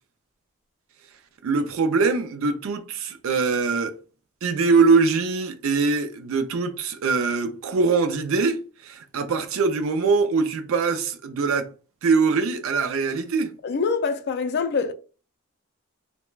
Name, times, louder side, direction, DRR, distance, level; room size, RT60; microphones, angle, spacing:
voice 1, 1.4-4.0 4.4-11.7 12.0-13.5, right 4 dB, 70° right, 0.4 m, -22 dB
voice 2, 13.6-14.9, left 5 dB, 50° left, 0.3 m, -24 dB
3.1 x 2.1 x 2.2 m
head